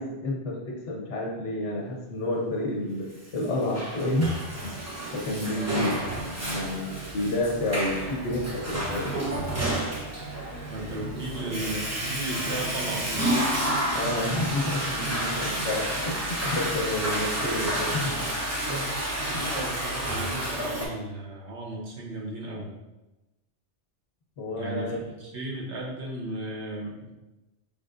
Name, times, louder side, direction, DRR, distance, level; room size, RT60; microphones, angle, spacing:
voice 1, 0.0-4.7 5.1-9.1 13.9-18.2 24.4-25.0, left 1 dB, 75° left, -2 dB, 1.3 m, -30 dB
Water / Toilet flush, 3.4-20.9, right 1 dB, 15° right, 0.6 m, -30 dB
voice 2, 5.5-5.9 10.7-13.2 15.2-15.4 19.2-22.7 24.6-27.1, right 1 dB, 70° right, -3 dB, 1.3 m, -35 dB
5.2 x 3.5 x 2.5 m, 1.0 s
omnidirectional pair, 1.2 m